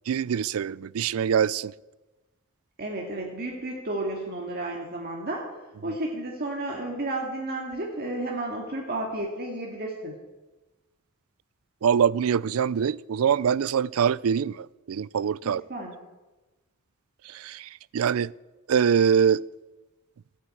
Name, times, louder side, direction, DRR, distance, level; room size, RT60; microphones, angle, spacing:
voice 1, 0.1-1.7 11.8-15.6 17.3-18.3 18.7-19.4, right 7 dB, 90° right, 0.4 m, -24 dB
voice 2, 2.8-10.1 15.4-16.0, right 2 dB, 50° right, 2.1 m, -32 dB
15.5 x 9.2 x 8.5 m
head